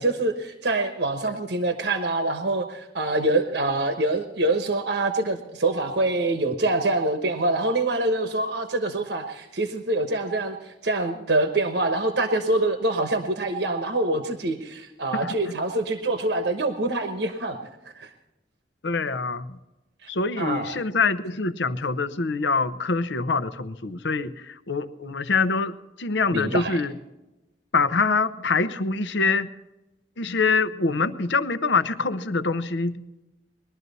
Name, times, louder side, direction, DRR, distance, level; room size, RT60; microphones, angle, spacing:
voice 1, 0.0-17.6 17.9-18.1 20.0-20.1 20.4-20.7 26.3-26.8, right 2 dB, 70° right, 6 dB, 1.1 m, -25 dB
voice 2, 15.1-15.6 18.8-19.6 20.1-26.9 27.7-29.5 30.2-33.2, left 4 dB, 75° left, 12 dB, 0.8 m, -25 dB
20.5 x 12.0 x 4.1 m, 0.99 s
head